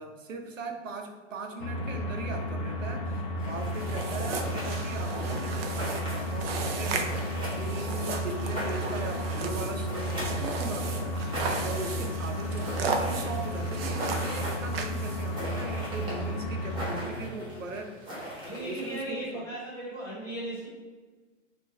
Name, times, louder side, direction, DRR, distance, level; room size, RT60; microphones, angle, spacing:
voice 1, 0.0-7.1 7.5-11.2 11.6-18.0 18.6-19.5, right 3 dB, 85° right, 4 dB, 0.9 m, -39 dB
sound 1, 1.6-17.0, equal, 45° left, 0.6 m, -33 dB
sound 2, 3.4-19.0, equal, 15° right, 1.0 m, -41 dB
sound 3, 3.7-15.4, right 4 dB, 50° right, 0.6 m, -36 dB
voice 2, 17.0-17.6 18.4-20.7, right 1 dB, 10° left, -8 dB, 1.3 m, -38 dB
4.4 x 2.6 x 4.2 m, 1.4 s
hypercardioid pair, 150°, 38 cm